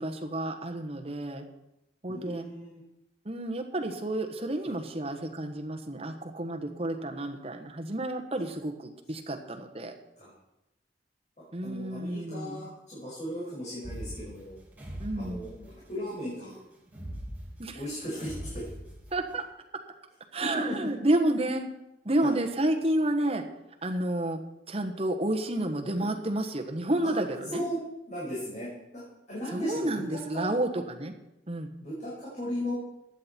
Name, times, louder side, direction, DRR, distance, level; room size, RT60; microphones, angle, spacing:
voice 1, 0.0-1.4 2.0-2.5 3.2-9.9 11.5-12.7 15.0-15.4 17.6-17.8 19.1-19.4 20.3-21.7 22.0-23.4 23.8-24.4 24.7-27.6 29.5-31.1 31.5-31.7, right 1 dB, 35° right, 4 dB, 1.3 m, -30 dB
voice 2, 2.1-2.8 4.7-4.8 10.2-10.3 11.6-14.5 15.2-16.6 17.7-18.6 20.5-20.9 22.2-22.3 26.0-26.1 27.5-27.8 28.1-29.0 29.3-30.5 31.8-32.7, equal, 40° left, -7 dB, 5.3 m, -36 dB
sound 1, 13.8-16.0 16.9-19.3, equal, 10° right, 2.4 m, -41 dB
15.0 x 10.0 x 4.4 m, 0.89 s
head